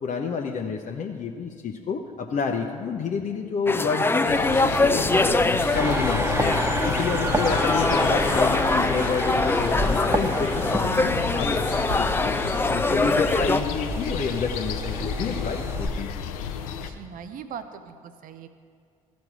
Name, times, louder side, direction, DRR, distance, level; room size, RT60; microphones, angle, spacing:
voice 1, 0.0-5.3 5.7-6.6 6.8-12.4 12.7-16.2, left 5 dB, 45° left, 1 dB, 0.8 m, -29 dB
sound 1, 3.7-13.6, left 2 dB, 15° left, 0.5 m, -24 dB
sound 2, 4.2-16.9, left 7 dB, 80° left, 0.6 m, -33 dB
sound 3, 5.7-15.9, equal, 15° right, 1.2 m, -30 dB
voice 2, 16.8-18.5, right 7 dB, 50° right, 10 dB, 0.6 m, -40 dB
14.5 x 5.2 x 6.1 m, 2.3 s
figure-of-eight pair, 45°, 18 cm